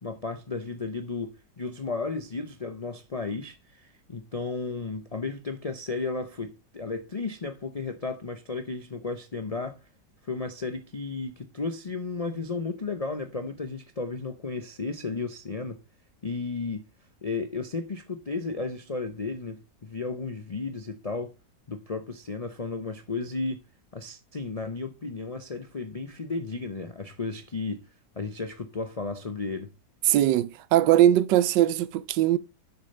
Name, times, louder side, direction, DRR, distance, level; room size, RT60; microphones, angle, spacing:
voice 1, 0.0-9.8 10.2-15.8 16.2-16.9 17.2-21.3 21.7-23.6 23.9-27.8 28.2-29.7, left 3 dB, 70° left, 0.3 m, -34 dB
voice 2, 30.1-32.4, right 12 dB, 85° right, 1.3 m, -21 dB
7.2 x 6.7 x 5.4 m
omnidirectional pair, 1.9 m